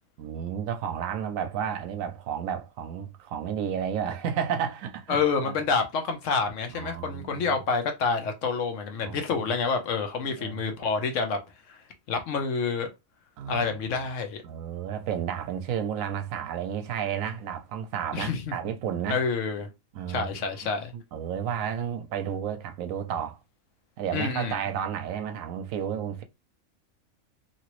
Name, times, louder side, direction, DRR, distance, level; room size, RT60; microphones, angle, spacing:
voice 1, 0.2-5.6 6.7-7.6 9.0-9.2 10.2-10.6 13.4-14.0 14.4-19.2 19.9-20.4 20.9-23.4 24.0-26.2, right 8 dB, 75° right, 0.9 m, -32 dB
voice 2, 5.1-11.4 11.7-11.8 12.1-12.9 13.5-14.4 18.1-18.5 19.1-19.7 20.1-20.9 24.1-24.6, left 5 dB, 65° left, 1.0 m, -28 dB
2.9 x 2.9 x 3.0 m
omnidirectional pair, 1.4 m